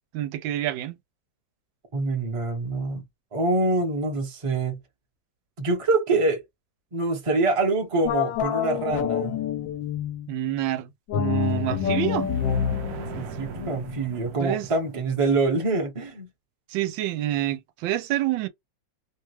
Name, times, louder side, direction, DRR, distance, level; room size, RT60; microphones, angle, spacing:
voice 1, 0.1-1.0 10.3-10.9 11.1-12.3 14.4-14.7 16.7-18.5, right 13 dB, 90° right, 1.3 m, -27 dB
voice 2, 1.9-3.0 3.3-4.8 5.6-6.4 6.9-9.4 13.1-16.3, right 3 dB, 25° right, 0.7 m, -25 dB
sound 1, 8.0-10.3 11.1-14.4, left 9 dB, 85° left, 1.3 m, -28 dB
sound 2, 11.3-15.3, right 8 dB, 70° right, 0.9 m, -40 dB
3.2 x 2.3 x 3.1 m
omnidirectional pair, 2.0 m